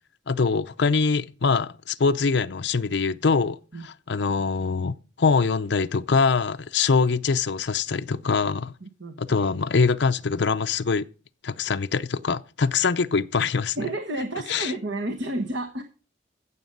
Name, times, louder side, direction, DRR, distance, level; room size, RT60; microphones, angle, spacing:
voice 1, 0.3-3.6 3.8-8.7 9.2-11.1 11.4-13.8 14.5-14.7, left 4 dB, 60° left, 0.5 m, -23 dB
voice 2, 8.8-9.2 13.8-15.8, right 1 dB, 65° right, 1.2 m, -30 dB
15.5 x 7.3 x 5.4 m
head